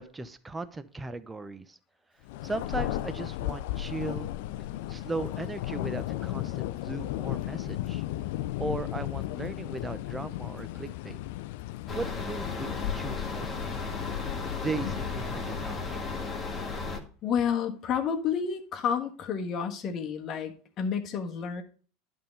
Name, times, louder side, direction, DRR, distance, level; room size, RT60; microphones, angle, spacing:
voice 1, 0.0-1.8 2.4-4.3 4.9-8.0 8.6-11.2 11.9-13.5 14.5-16.0, right 3 dB, 15° right, 12 dB, 0.7 m, -37 dB
Thunder, 2.3-15.9, left 14 dB, 70° left, 0.3 m, -35 dB
sound 1, 11.9-17.0, left 4 dB, 25° left, 1.7 m, -34 dB
voice 2, 17.2-21.6, left 7 dB, 45° left, 4 dB, 1.4 m, -30 dB
11.0 x 3.7 x 5.2 m, 0.42 s
hypercardioid pair, 95°, 0 cm